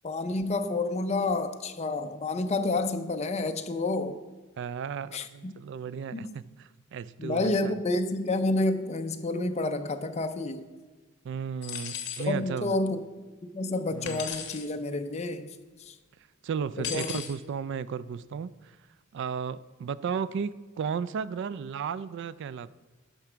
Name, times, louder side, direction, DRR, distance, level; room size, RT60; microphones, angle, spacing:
voice 1, 0.0-4.2 5.1-5.6 6.1-6.3 7.2-10.7 12.3-13.0 13.4-15.5 15.8-15.9 16.8-17.2, left 2 dB, 30° left, 8 dB, 0.5 m, -29 dB
voice 2, 4.6-7.8 11.2-12.7 13.9-14.3 16.4-18.8 19.1-22.7, right 6 dB, 55° right, 17 dB, 0.3 m, -34 dB
sound 1, 11.6-12.3 14.0-14.7 16.8-17.3, left 8 dB, 55° left, 1.1 m, -36 dB
10.5 x 6.0 x 4.5 m, 1.3 s
head